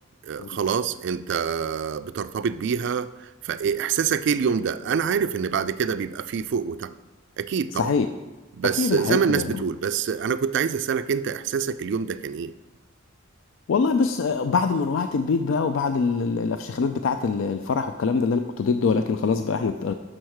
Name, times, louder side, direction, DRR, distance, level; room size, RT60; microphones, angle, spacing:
voice 1, 0.3-6.9 7.4-7.9 8.5-12.5, right 6 dB, 60° right, 14 dB, 0.3 m, -26 dB
voice 2, 7.8-8.1 8.8-9.6 13.7-19.9, left 5 dB, 65° left, 8 dB, 0.3 m, -24 dB
6.2 x 4.6 x 6.4 m, 1.1 s
head